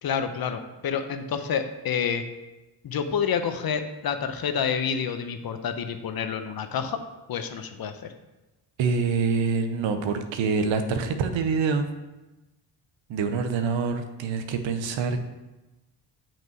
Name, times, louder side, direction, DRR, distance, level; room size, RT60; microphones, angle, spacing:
voice 1, 0.0-2.2 2.8-7.0 7.3-7.9, left 7 dB, 55° left, 9 dB, 0.7 m, -28 dB
voice 2, 8.8-11.9 13.1-15.2, right 5 dB, 90° right, 8 dB, 0.8 m, -25 dB
5.9 x 5.4 x 4.5 m, 1.1 s
cardioid pair, 85°, 44 cm